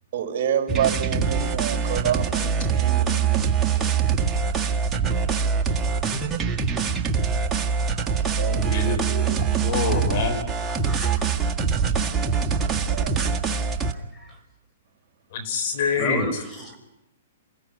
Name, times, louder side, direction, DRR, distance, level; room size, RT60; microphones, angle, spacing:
voice 1, 0.1-3.9 8.0-9.0 12.2-12.4 12.9-13.2, right 9 dB, 45° right, 4 dB, 5.5 m, -29 dB
sound 1, 0.7-13.9, right 6 dB, 15° right, 1.6 m, -24 dB
voice 2, 8.6-10.4 15.3-16.3, left 5 dB, 55° left, 11 dB, 3.9 m, -26 dB
voice 3, 12.5-13.3 13.6-14.4 16.0-16.8, left 1 dB, 10° left, 4 dB, 5.7 m, -37 dB
28.0 x 15.5 x 9.6 m, 0.91 s
hypercardioid pair, 145°, 0 cm